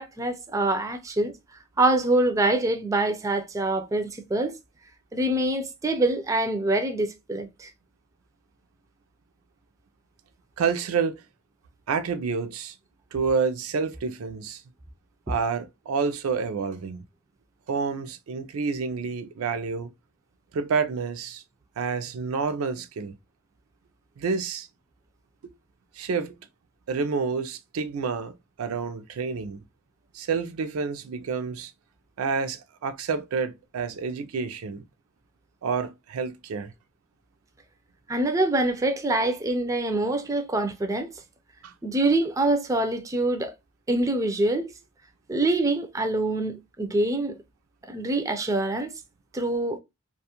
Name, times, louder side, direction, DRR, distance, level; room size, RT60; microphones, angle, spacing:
voice 1, 0.0-1.3 1.8-4.5 5.1-7.7 38.1-41.1 41.8-43.5 43.9-44.7 45.3-47.4 47.9-48.9 49.3-49.8, right 2 dB, 15° right, 0.3 m, -25 dB
voice 2, 10.6-11.2 11.9-12.7 13.1-14.6 15.3-17.1 17.7-19.9 20.5-21.4 21.8-23.1 24.2-24.7 25.4-25.5 26.0-26.4 26.9-29.6 30.1-31.7 32.2-34.8 35.6-36.7 41.6-41.7 43.9-44.0, right 5 dB, 85° right, 0.4 m, -29 dB
2.4 x 2.3 x 2.8 m
head